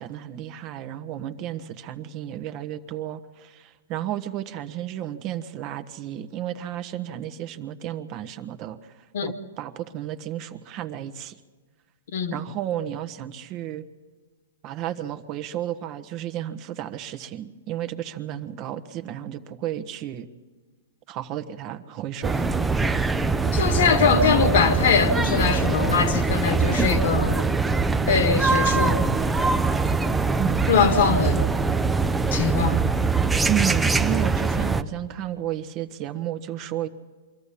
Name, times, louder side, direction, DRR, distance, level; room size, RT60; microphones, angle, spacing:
voice 1, 0.0-8.9 9.2-11.4 12.3-13.8 14.6-20.3 21.1-22.5 30.4-30.7 33.5-36.9, right 11 dB, 35° right, 1.2 m, -32 dB
sound 1, 22.2-34.8, right 4 dB, 10° right, 0.7 m, -23 dB
voice 2, 23.5-27.5 28.1-29.1 30.7-31.4 32.3-32.8, left 6 dB, 70° left, 2.0 m, -22 dB
24.5 x 14.0 x 8.5 m
hypercardioid pair, 135°, 0 cm